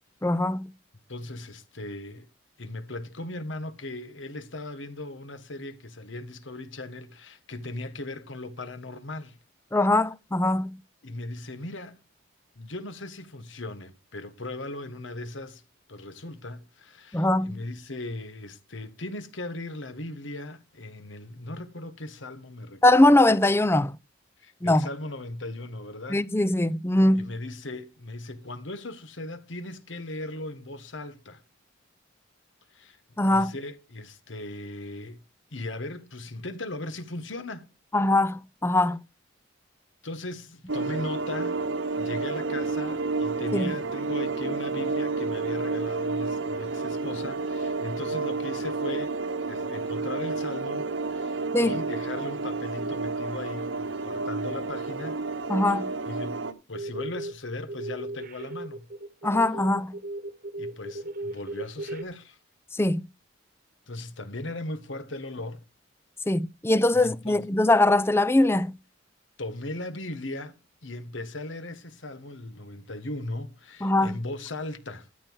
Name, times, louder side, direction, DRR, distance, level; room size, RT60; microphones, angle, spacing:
voice 1, 0.2-0.7 9.7-10.8 17.1-17.6 22.8-23.9 24.6-24.8 26.1-27.3 33.2-33.5 37.9-39.0 43.5-43.7 51.5-51.7 55.5-55.9 59.2-60.0 62.7-63.1 66.3-68.7 73.8-74.2, left 1 dB, 10° left, 0.5 m, -22 dB
voice 2, 1.1-2.3 2.6-9.4 11.0-12.0 12.6-15.6 15.9-23.2 24.4-26.2 27.1-31.4 32.7-35.2 35.5-37.7 40.0-41.6 42.0-49.1 49.5-55.2 55.7-55.8 56.1-58.9 60.6-62.4 63.9-65.6 66.9-67.4 69.4-70.5 70.8-75.1, left 2 dB, 75° left, 1.5 m, -38 dB
sound 1, 40.7-56.5, right 3 dB, 80° right, 1.5 m, -30 dB
sound 2, 56.7-57.3 57.7-62.0, right 2 dB, 45° right, 1.3 m, -36 dB
13.0 x 7.6 x 4.7 m
head